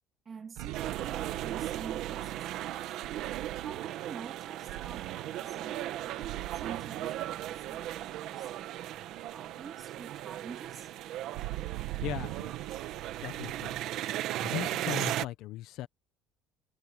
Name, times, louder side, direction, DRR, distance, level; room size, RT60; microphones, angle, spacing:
voice 1, 0.2-2.9 3.6-10.9, right 6 dB, 25° right, 2.7 m, -48 dB
sound 1, 0.6-8.9 9.3-9.5 9.8-14.0, right 18 dB, 80° right, 1.4 m, -43 dB
sound 2, 0.7-15.2, right 13 dB, 50° right, 1.5 m, -37 dB
voice 2, 12.0-12.6 13.2-13.8 14.4-15.9, left 14 dB, 55° left, 0.8 m, -38 dB
cardioid pair, 175°, 0 cm